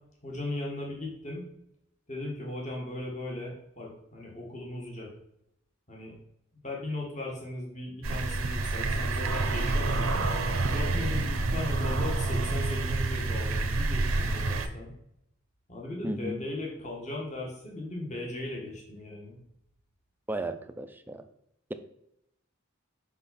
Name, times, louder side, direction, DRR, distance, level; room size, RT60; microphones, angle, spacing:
voice 1, 0.2-1.4 2.1-5.1 5.9-6.2 6.6-10.2 10.7-14.9 15.7-19.4, left 2 dB, 35° left, -2 dB, 1.7 m, -37 dB
sound 1, 8.0-14.7, right 2 dB, 85° right, 0.8 m, -28 dB
voice 2, 16.0-16.4 20.3-21.2, right 1 dB, 10° right, 8 dB, 0.4 m, -34 dB
5.7 x 5.5 x 4.2 m, 0.79 s
head